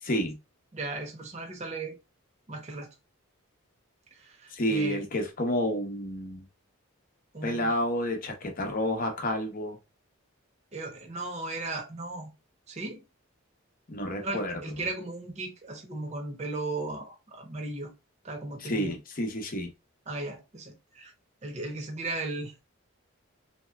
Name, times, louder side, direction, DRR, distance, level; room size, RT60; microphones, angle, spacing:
voice 1, 0.0-0.4 4.5-6.5 7.4-9.8 13.9-14.9 18.6-19.7, equal, 40° left, 0.8 m, -30 dB
voice 2, 0.7-2.0 2.5-2.9 4.1-5.0 7.3-7.7 10.7-12.3 12.7-13.0 14.2-17.9 18.2-18.9 20.1-21.1 21.4-22.5, right 2 dB, 35° right, 0.8 m, -36 dB
3.3 x 2.8 x 2.2 m
head